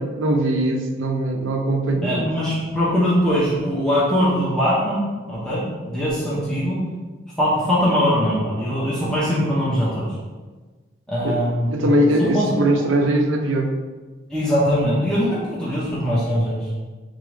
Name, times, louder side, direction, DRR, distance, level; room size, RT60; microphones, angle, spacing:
voice 1, 0.0-2.3 11.2-13.7, right 1 dB, 85° right, 3 dB, 0.6 m, -21 dB
voice 2, 2.0-6.8 7.4-10.0 11.1-11.9 12.3-12.6 14.3-16.6, equal, 5° left, -9 dB, 0.8 m, -21 dB
3.7 x 3.6 x 3.3 m, 1.3 s
head